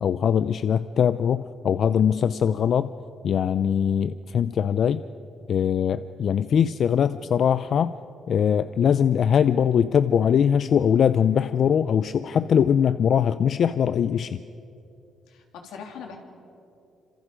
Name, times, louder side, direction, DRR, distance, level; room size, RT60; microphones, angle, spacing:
voice 1, 0.0-2.9 3.2-5.0 5.5-7.9 8.3-14.4, left 8 dB, 60° left, 13 dB, 0.5 m, -21 dB
voice 2, 15.3-16.2, left 6 dB, 90° left, 2 dB, 3.3 m, -41 dB
27.5 x 26.5 x 5.2 m, 2.7 s
cardioid pair, 90°, 0 cm